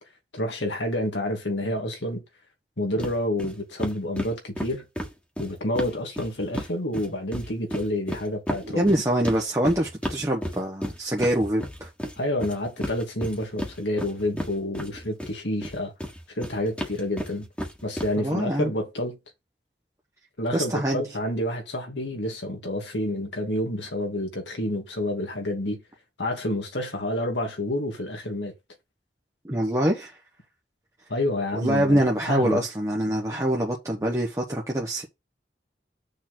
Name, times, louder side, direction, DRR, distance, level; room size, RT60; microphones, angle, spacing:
voice 1, 0.3-2.2 2.8-4.8 5.4-8.9 12.2-15.9 16.4-17.5 17.8-19.2 20.4-25.8 26.2-28.5 31.1-32.6, left 1 dB, 85° left, 2.4 m, -29 dB
sound 1, 3.0-3.1 3.4-3.5 3.8-6.7 6.9-15.3 15.6-18.1, equal, 5° left, 1.7 m, -33 dB
voice 2, 8.7-11.9 18.2-18.7 20.5-21.0 29.5-30.1 31.5-35.0, right 1 dB, 15° right, 1.1 m, -24 dB
6.6 x 4.1 x 6.1 m
head